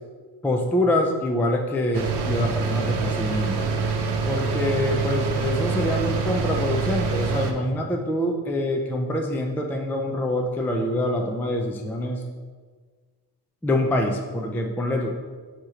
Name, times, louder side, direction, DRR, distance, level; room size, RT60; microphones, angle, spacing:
voice 1, 0.4-3.7 4.3-12.2 13.6-15.1, left 1 dB, 5° left, 2 dB, 0.4 m, -25 dB
sound 1, 1.9-7.5, right 4 dB, 75° right, 0.8 m, -25 dB
7.7 x 2.9 x 4.9 m, 1.5 s
wide cardioid pair, 150°, 40 cm